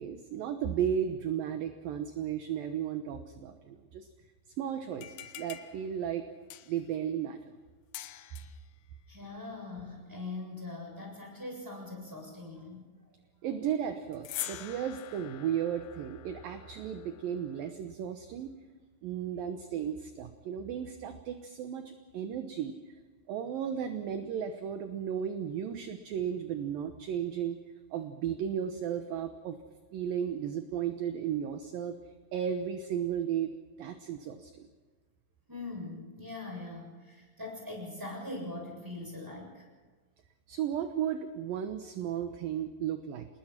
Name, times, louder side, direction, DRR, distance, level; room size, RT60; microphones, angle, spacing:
voice 1, 0.0-4.1 4.6-6.3 6.7-7.5 13.4-18.5 19.0-22.9 23.3-27.6 27.9-29.6 29.9-32.0 32.3-34.7 40.5-43.3, right 9 dB, 70° right, 7 dB, 2.3 m, -34 dB
sound 1, 4.9-6.9 7.9-8.7 14.1-17.7, left 13 dB, 75° left, 2.3 m, -45 dB
voice 2, 9.1-12.8 35.5-39.7, left 2 dB, 5° right, 0 dB, 6.9 m, -41 dB
28.0 x 20.0 x 5.9 m, 1.4 s
omnidirectional pair, 5.3 m